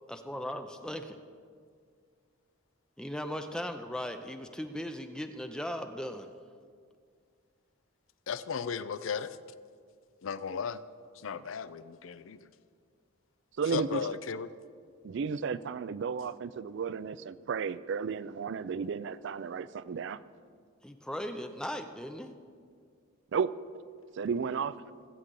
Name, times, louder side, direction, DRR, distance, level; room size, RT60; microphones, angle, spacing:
voice 1, 0.1-1.2 3.0-6.4 20.8-22.3, equal, 5° left, 7 dB, 0.4 m, -38 dB
voice 2, 8.3-9.4 10.2-10.8 11.1-12.5 13.7-14.5, left 6 dB, 75° left, 15 dB, 0.5 m, -35 dB
voice 3, 13.6-14.0 15.0-20.2 23.3-23.5 24.1-24.8, right 6 dB, 60° right, 17 dB, 0.4 m, -33 dB
21.0 x 8.0 x 3.8 m, 2.1 s
head